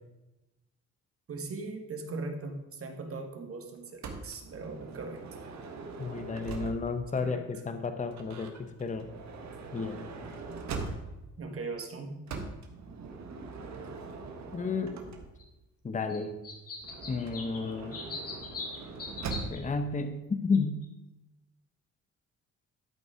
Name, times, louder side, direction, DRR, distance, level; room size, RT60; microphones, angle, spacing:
voice 1, 1.3-5.2 7.2-7.4 11.4-12.2, right 3 dB, 50° right, 4 dB, 1.7 m, -39 dB
Motor vehicle (road) / Sliding door, 4.0-7.1 8.1-11.3 12.3-15.6 16.8-19.8, right 4 dB, 65° right, 1.5 m, -41 dB
voice 2, 6.0-7.4 7.7-9.1 9.7-10.0 14.5-15.0 15.8-16.4 17.1-18.0 19.5-20.8, left 4 dB, 25° left, 8 dB, 0.9 m, -32 dB
sound 1, 15.4-15.5 16.1-16.2 16.4-19.6 20.5-20.6 20.8-20.9, left 3 dB, 50° left, 2.0 m, -41 dB
12.5 x 5.3 x 4.9 m, 0.98 s
cardioid pair, 90°, 30 cm